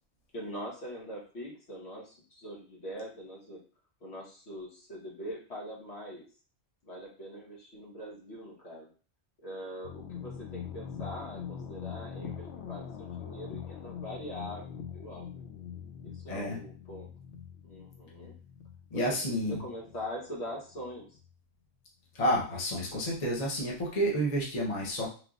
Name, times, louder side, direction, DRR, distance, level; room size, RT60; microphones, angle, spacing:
voice 1, 0.3-3.6 4.0-6.2 6.8-8.9 9.4-15.2 16.0-17.1 17.6-18.3 18.9-21.1, equal, 70° left, -3 dB, 1.6 m, -43 dB
sound 1, 9.8-21.3, left 8 dB, 90° left, 0.9 m, -43 dB
voice 2, 16.3-16.6 18.9-19.6 22.1-25.1, equal, 35° left, -3 dB, 1.0 m, -30 dB
4.5 x 3.3 x 2.4 m, 0.39 s
omnidirectional pair, 1.1 m